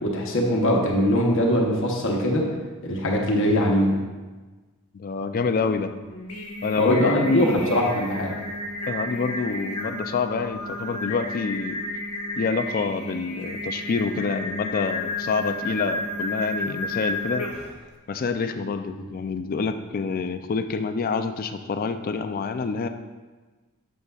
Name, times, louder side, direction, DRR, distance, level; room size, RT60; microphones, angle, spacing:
voice 1, 0.0-2.5 2.8-4.0 6.8-8.3, equal, 60° left, -1 dB, 0.9 m, -22 dB
voice 2, 4.9-5.9 6.6-7.7 8.9-11.8 12.3-17.5 18.1-22.9, left 4 dB, 40° left, 9 dB, 0.4 m, -27 dB
Singing, 6.1-17.8, left 1 dB, 85° left, 1.1 m, -32 dB
7.9 x 6.4 x 2.4 m, 1.3 s
head